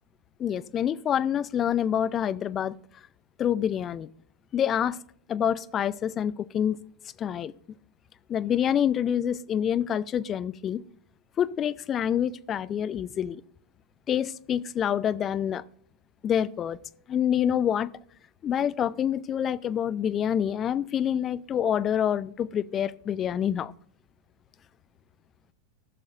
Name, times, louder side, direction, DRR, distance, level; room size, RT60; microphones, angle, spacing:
voice 1, 0.4-2.7 3.4-4.1 4.5-5.0 5.3-6.8 7.2-7.5 8.3-10.8 11.4-13.4 14.1-15.6 16.2-16.8 17.1-17.9 18.4-23.7, left 9 dB, 25° left, 0.3 m, -27 dB
16.0 x 6.5 x 2.5 m
figure-of-eight pair, 90°, 0 cm